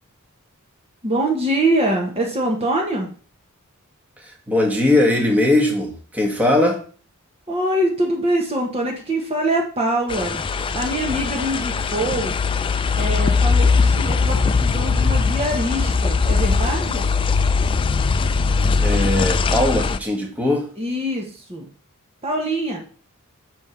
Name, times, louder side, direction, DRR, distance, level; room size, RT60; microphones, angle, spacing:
voice 1, 1.0-3.1 7.5-10.4 10.7-12.3 12.9-17.1 20.8-21.7 22.2-22.8, right 1 dB, 25° right, 1 dB, 1.0 m, -24 dB
voice 2, 4.2-6.8 18.8-20.7, left 1 dB, 5° right, -1 dB, 1.2 m, -19 dB
sound 1, 10.1-20.0, left 4 dB, 25° left, 0.3 m, -20 dB
6.4 x 3.5 x 5.6 m, 0.41 s
head